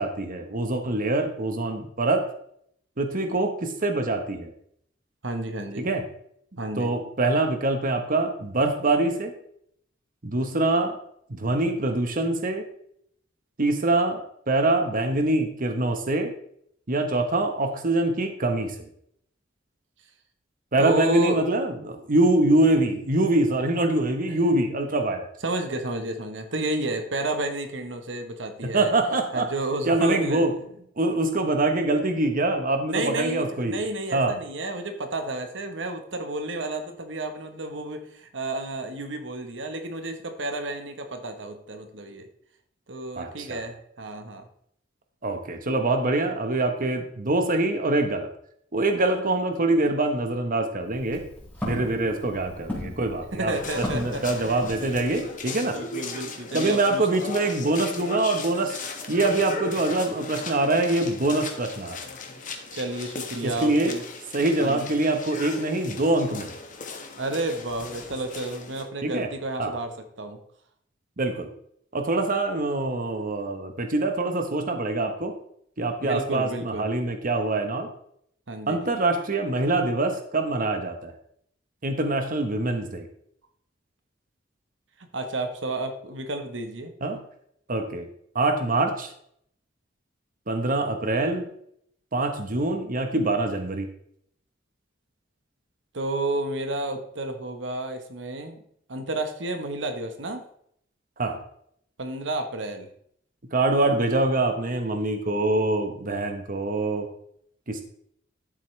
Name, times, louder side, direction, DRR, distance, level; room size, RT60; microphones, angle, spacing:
voice 1, 0.0-2.2 3.0-4.5 5.8-6.0 6.8-9.3 10.2-10.9 11.4-12.6 13.6-14.2 14.5-16.3 16.9-18.9 20.7-25.3 28.7-29.5 29.9-30.5 31.0-33.8 34.1-34.3 43.2-43.6 45.2-48.3 48.7-51.2 51.6-55.8 56.5-58.8 59.1-62.0 63.4-63.9 64.3-66.5 69.0-69.3 69.6-69.7 71.2-71.5 71.9-75.3 75.8-77.9 78.7-81.1 81.8-83.1 87.0-87.2 87.7-88.0 88.3-89.1 90.5-91.5 92.1-93.9 101.2-101.4 103.5-107.1 107.7-107.8, right 2 dB, 50° right, 5 dB, 1.1 m, -24 dB
voice 2, 5.2-5.9 6.6-6.9 20.8-21.4 25.4-28.9 29.3-30.5 32.9-42.3 42.9-44.5 53.3-54.6 55.7-57.1 62.7-64.0 64.6-64.9 67.2-70.4 76.0-76.9 78.5-78.8 85.1-86.9 95.9-98.6 98.9-100.4 102.0-102.9, right 2 dB, 75° right, 6 dB, 1.2 m, -31 dB
Walk footsteps, 50.8-55.3, left 1 dB, 10° left, 4.5 m, -37 dB
sound 1, 53.5-68.8, left 3 dB, 45° left, 1.5 m, -37 dB
12.5 x 7.5 x 3.3 m, 0.68 s
head